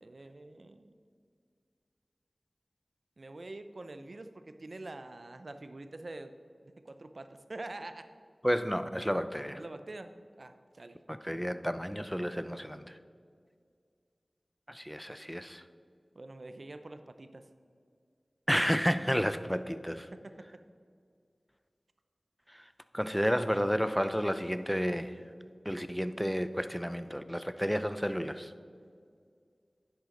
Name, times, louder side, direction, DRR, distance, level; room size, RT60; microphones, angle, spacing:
voice 1, 0.0-0.9 3.2-6.3 6.6-8.1 9.6-11.0 16.1-17.5 20.1-20.6, right 2 dB, 65° right, 9 dB, 0.5 m, -46 dB
voice 2, 8.4-9.6 11.1-12.9 14.7-15.6 18.5-20.1 22.5-22.6 22.9-25.1 25.7-28.5, equal, ahead, 11 dB, 0.5 m, -31 dB
10.5 x 8.3 x 3.8 m, 2.2 s
wide cardioid pair, 40°, 0 cm